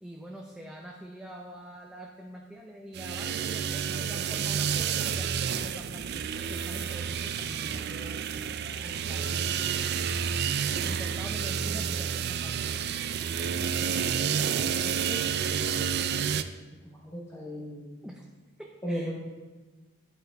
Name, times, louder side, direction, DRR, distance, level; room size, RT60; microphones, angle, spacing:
voice 1, 0.0-8.2 8.8-9.7 10.9-12.8 18.0-18.2 18.6-19.1, equal, 5° right, -1 dB, 0.6 m, -45 dB
sound 1, 2.9-16.4, right 7 dB, 50° right, 0.4 m, -30 dB
voice 2, 16.8-18.1 18.8-19.1, equal, 15° left, -5 dB, 1.1 m, -36 dB
11.5 x 7.8 x 3.5 m, 1.2 s
head